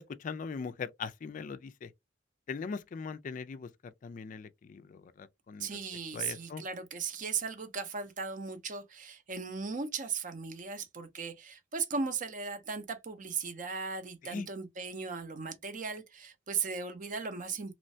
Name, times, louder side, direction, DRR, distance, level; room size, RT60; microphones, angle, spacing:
voice 1, 0.0-1.9 2.5-3.7 4.0-5.7 6.1-6.6 14.2-14.5, left 5 dB, 45° left, 0.3 m, -40 dB
voice 2, 5.6-17.7, right 5 dB, 45° right, 0.6 m, -37 dB
3.0 x 2.2 x 2.6 m
head